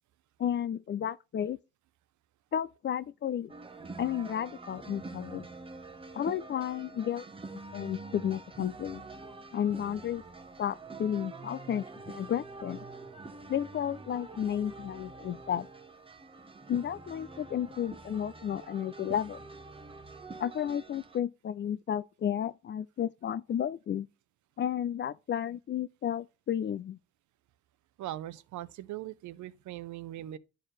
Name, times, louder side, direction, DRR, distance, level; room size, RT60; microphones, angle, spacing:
voice 1, 0.4-1.6 2.5-3.5 4.0-5.5 6.1-7.2 7.7-9.0 9.5-10.2 10.6-12.8 13.5-15.7 16.7-19.4 20.4-24.1 24.6-27.0, left 9 dB, 40° left, 0.4 m, -32 dB
sound 1, 3.5-21.2, right 3 dB, 20° right, 1.0 m, -46 dB
voice 2, 28.0-30.4, right 13 dB, 75° right, 0.6 m, -40 dB
11.5 x 4.5 x 3.2 m
cardioid pair, 90°, 30 cm